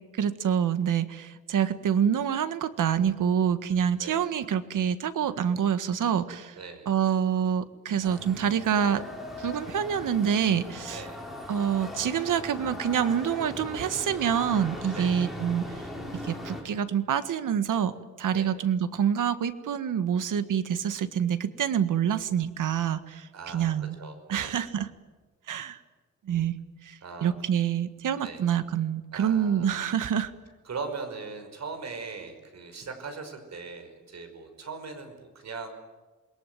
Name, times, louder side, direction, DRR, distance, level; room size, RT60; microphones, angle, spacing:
voice 1, 0.1-6.5 6.9-9.0 9.4-11.0 11.5-15.7 16.2-23.9 24.3-24.9 25.5-25.8 26.3-26.5 26.8-30.3, right 8 dB, 85° right, 11 dB, 1.7 m, -27 dB
voice 2, 6.6-6.9 10.9-11.2 14.9-15.2 18.3-18.5 23.3-24.6 25.6-25.8 27.0-27.3 28.2-28.4 29.1-29.9 30.6-35.7, right 4 dB, 60° right, 7 dB, 5.5 m, -40 dB
sound 1, 8.0-16.6, left 1 dB, ahead, 6.5 m, -39 dB
28.0 x 22.0 x 9.4 m, 1.3 s
wide cardioid pair, 140°, 31 cm